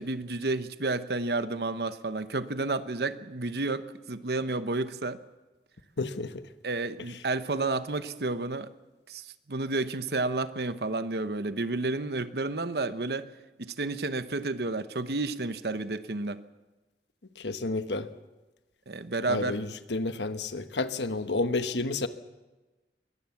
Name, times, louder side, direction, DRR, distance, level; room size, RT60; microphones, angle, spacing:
voice 1, 0.0-5.2 6.6-8.7 9.1-13.3 13.6-16.5 18.9-19.6, right 3 dB, 60° right, 12 dB, 1.0 m, -31 dB
voice 2, 6.0-6.3 17.4-18.1 19.3-19.6 19.9-22.1, left 3 dB, 85° left, 10 dB, 1.2 m, -30 dB
22.5 x 18.0 x 7.2 m, 1.2 s
head